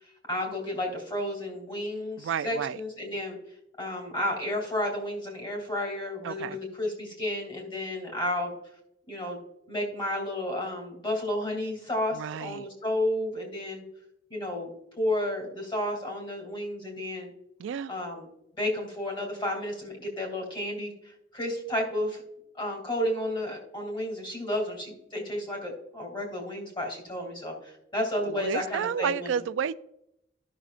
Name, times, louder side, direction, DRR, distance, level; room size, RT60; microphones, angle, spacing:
voice 1, 0.3-3.4 3.8-8.5 9.1-9.4 9.7-13.8 14.3-14.7 15.0-17.3 17.9-18.3 18.6-22.2 22.6-29.4, left 1 dB, 30° left, 2.7 m, -32 dB
voice 2, 2.2-2.8 6.2-6.6 12.1-12.7 17.6-17.9 28.3-29.7, right 7 dB, 90° right, 0.3 m, -31 dB
14.5 x 6.2 x 2.5 m
head